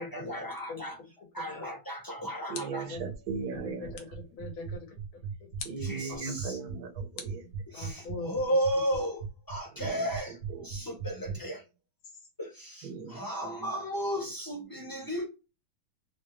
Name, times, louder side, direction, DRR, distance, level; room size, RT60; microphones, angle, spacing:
voice 1, 0.0-1.0 1.3-2.9 5.8-6.6 7.7-10.4 10.6-11.6 12.4-15.3, equal, 15° left, 0.9 m, -34 dB
sound 1, 1.8-3.0 3.9-4.3 5.6-5.9 7.2-8.0, left 6 dB, 70° left, 1.4 m, -46 dB
voice 2, 2.5-4.0 5.7-7.5 9.7-10.9 11.3-11.4 12.8-13.7 14.8-14.9, right 5 dB, 90° right, 1.8 m, -39 dB
sound 2, 3.0-11.4, right 6 dB, 65° right, 1.4 m, -37 dB
voice 3, 3.6-5.8 7.7-8.5, left 3 dB, 85° left, 2.3 m, -42 dB
4.6 x 2.4 x 3.1 m
omnidirectional pair, 2.2 m